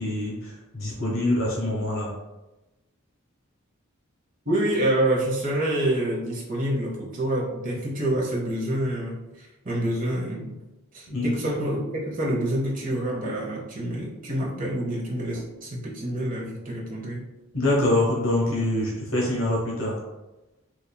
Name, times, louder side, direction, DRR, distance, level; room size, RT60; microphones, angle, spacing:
voice 1, 0.0-2.1 11.1-11.3 17.5-20.0, left 1 dB, 65° left, -4 dB, 1.0 m, -25 dB
voice 2, 4.5-9.2 9.6-10.6 10.9-17.3, right 1 dB, 40° right, -3 dB, 0.8 m, -27 dB
4.0 x 2.9 x 2.2 m, 1.0 s
head